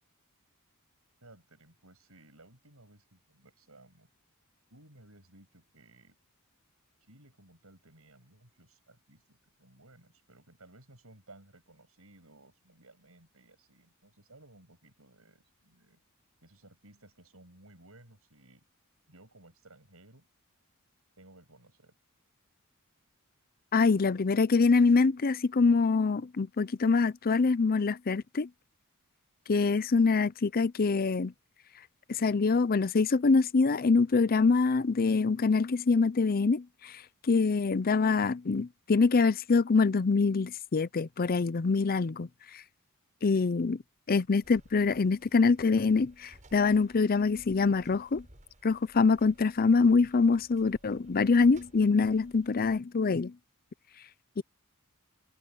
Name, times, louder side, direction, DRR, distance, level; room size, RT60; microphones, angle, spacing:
voice 1, 1.2-4.1 4.7-6.1 7.1-16.0 16.4-18.6 19.1-20.3 21.2-21.9, right 2 dB, 75° right, 7.9 m, -58 dB
voice 2, 23.7-28.5 29.5-31.3 32.1-36.9 37.3-42.3 43.2-43.8 44.1-48.2 48.6-53.3 54.4-54.5, left 4 dB, 40° left, 0.5 m, -25 dB
sound 1, 44.4-52.8, right 1 dB, 35° right, 7.5 m, -58 dB
head